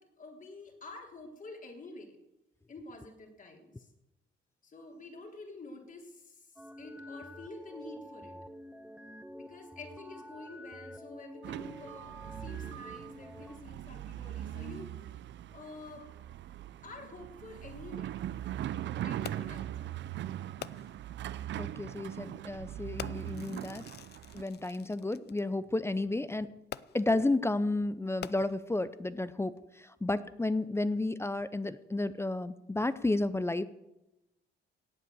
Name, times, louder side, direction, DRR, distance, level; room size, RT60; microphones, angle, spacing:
voice 1, 0.0-2.2 2.7-3.9 4.6-8.4 9.4-15.0 15.5-16.1 16.8-18.1 19.0-19.9, left 2 dB, 40° left, 2 dB, 3.5 m, -48 dB
sound 1, 6.6-13.6, equal, 5° right, 1.1 m, -48 dB
sound 2, 11.4-24.4, right 12 dB, 65° right, 0.6 m, -40 dB
Fireworks, 19.2-19.7 20.6-21.1 22.0-22.1 23.0-25.4 26.7-27.2 28.0-28.9 29.6-29.7, left 10 dB, 55° left, 0.6 m, -46 dB
voice 2, 21.6-23.9 24.3-26.5 26.9-33.7, left 2 dB, 15° left, 14 dB, 0.6 m, -32 dB
17.5 x 8.5 x 7.0 m, 0.93 s
cardioid pair, 90°, 20 cm